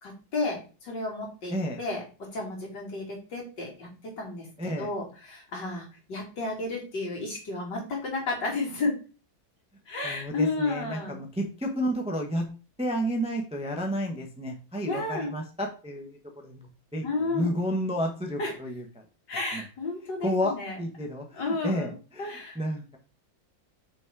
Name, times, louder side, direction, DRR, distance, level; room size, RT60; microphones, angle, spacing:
voice 1, 0.0-3.9 4.2-4.5 4.8-9.0 9.9-11.2 14.9-15.3 17.0-17.6 18.4-18.5 19.3-20.8 21.3-22.6, left 3 dB, 65° left, -3 dB, 3.4 m, -32 dB
voice 2, 4.6-4.9 10.0-12.4 12.8-17.0 17.3-19.0 19.5-19.6 20.2-22.3 22.5-23.0, equal, 5° right, 2 dB, 0.8 m, -31 dB
6.3 x 5.2 x 4.7 m, 0.35 s
omnidirectional pair, 2.1 m